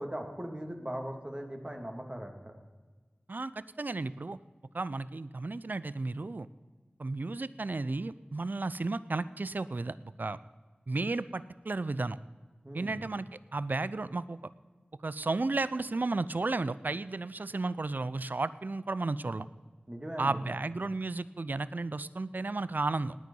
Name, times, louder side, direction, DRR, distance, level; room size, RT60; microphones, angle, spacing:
voice 1, 0.0-2.4 12.6-13.1 19.9-20.5, equal, 25° right, 3 dB, 2.3 m, -39 dB
voice 2, 3.3-4.4 4.7-6.5 7.0-10.4 10.9-12.2 12.7-14.4 15.0-19.5 20.2-23.2, right 3 dB, 55° right, 17 dB, 0.4 m, -33 dB
18.5 x 9.5 x 5.4 m, 1.4 s
wide cardioid pair, 45°, 4 cm